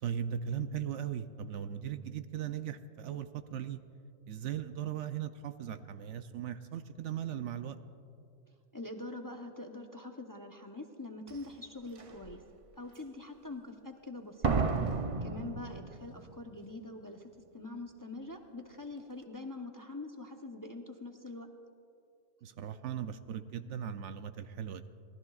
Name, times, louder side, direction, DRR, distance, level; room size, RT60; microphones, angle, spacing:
voice 1, 0.0-3.8 4.3-7.8 22.4-24.8, right 9 dB, 70° right, 10 dB, 0.9 m, -38 dB
voice 2, 8.7-12.4 12.8-14.6 15.2-21.5, left 2 dB, 20° left, 3 dB, 0.6 m, -44 dB
Slam, 11.3-11.4 12.0-12.4 14.4-16.3 16.6-16.7, right 4 dB, 45° right, 0.4 m, -32 dB
25.5 x 18.5 x 2.4 m, 2.5 s
omnidirectional pair, 1.3 m